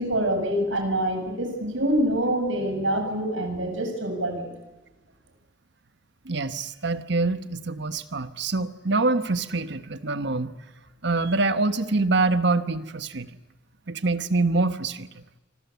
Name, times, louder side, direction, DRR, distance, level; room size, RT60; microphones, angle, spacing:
voice 1, 0.0-4.5, right 1 dB, 90° right, 5 dB, 6.9 m, -26 dB
voice 2, 6.2-10.6 11.0-13.3 13.9-15.1, right 3 dB, 65° right, 11 dB, 1.4 m, -25 dB
28.0 x 25.0 x 8.4 m, 1.0 s
head